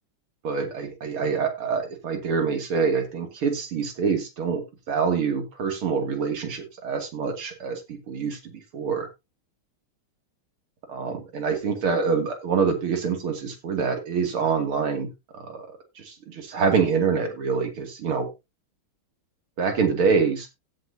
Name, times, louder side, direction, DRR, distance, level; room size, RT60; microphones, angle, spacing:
voice 1, 0.4-9.1 10.9-15.1 15.3-18.3 19.6-20.5, right 5 dB, 85° right, 4 dB, 3.3 m, -26 dB
16.0 x 7.5 x 2.7 m, 0.23 s
omnidirectional pair, 2.3 m